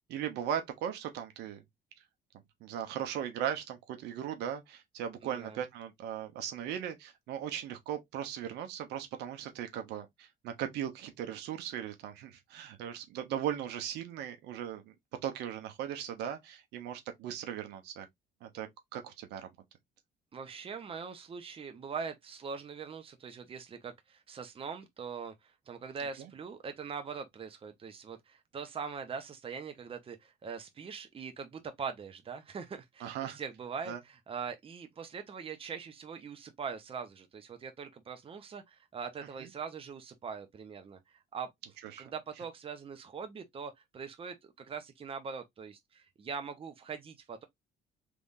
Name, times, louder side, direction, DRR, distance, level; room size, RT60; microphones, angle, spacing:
voice 1, 0.1-1.6 2.6-14.9 15.2-18.1 18.4-19.5 33.0-33.4 33.9-34.0 39.4-39.5 41.9-42.0, right 9 dB, 85° right, 1.0 m, -38 dB
voice 2, 5.2-5.6 20.3-41.5 42.0-47.4, right 6 dB, 35° right, 0.9 m, -42 dB
3.5 x 3.4 x 2.6 m
cardioid pair, 110°, 17 cm